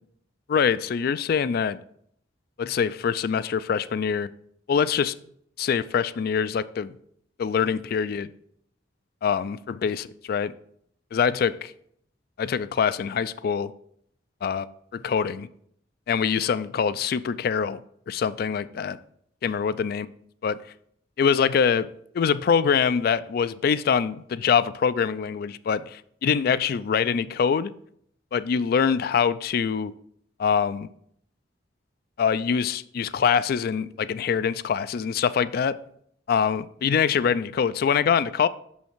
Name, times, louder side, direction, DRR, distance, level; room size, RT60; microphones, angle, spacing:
voice 1, 0.5-1.8 2.6-4.3 4.7-5.1 5.6-6.9 7.4-8.3 9.2-10.5 11.1-11.7 12.4-13.7 14.4-15.5 16.1-17.8 18.1-19.0 19.4-20.1 20.4-20.6 21.2-21.9 22.1-27.7 28.3-29.9 30.4-30.9 32.2-35.8 36.3-38.5, left 6 dB, 55° left, 16 dB, 0.3 m, -24 dB
6.4 x 5.6 x 4.4 m, 0.67 s
head